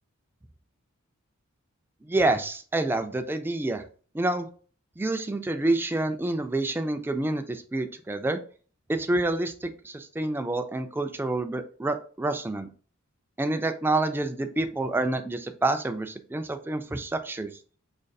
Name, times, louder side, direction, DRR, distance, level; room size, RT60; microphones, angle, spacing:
voice 1, 2.1-3.8 4.1-4.5 5.0-8.4 8.9-12.7 13.4-17.5, right 2 dB, 10° right, 7 dB, 0.3 m, -28 dB
5.1 x 2.5 x 2.3 m, 0.39 s
head